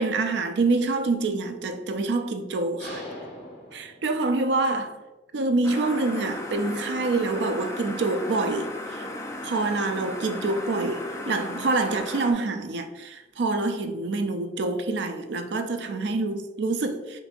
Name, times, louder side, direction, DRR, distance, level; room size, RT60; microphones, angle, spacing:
voice 1, 0.0-3.1 3.7-5.0 5.3-9.0 9.4-17.2, right 3 dB, 70° right, 0.4 m, -26 dB
sound 1, 2.8-4.6, left 1 dB, 60° left, 1.4 m, -41 dB
sound 2, 5.6-12.3, left 1 dB, 15° left, 0.4 m, -36 dB
6.0 x 2.6 x 2.5 m
head